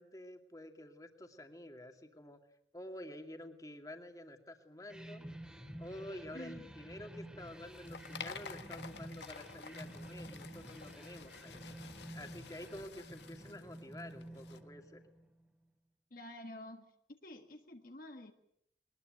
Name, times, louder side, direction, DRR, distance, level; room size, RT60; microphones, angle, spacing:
voice 1, 0.0-2.4 2.7-5.3 5.8-11.6 12.1-15.0, left 1 dB, 20° left, 5 dB, 2.4 m, -49 dB
sound 1, 4.9-15.4, right 1 dB, 5° right, 2.4 m, -50 dB
voice 2, 6.3-6.7 16.1-16.9 17.2-18.3, left 1 dB, 50° left, 5 dB, 1.6 m, -49 dB
sound 2, 7.4-14.6, left 5 dB, 80° left, 1.7 m, -51 dB
22.0 x 20.0 x 9.1 m, 0.73 s
head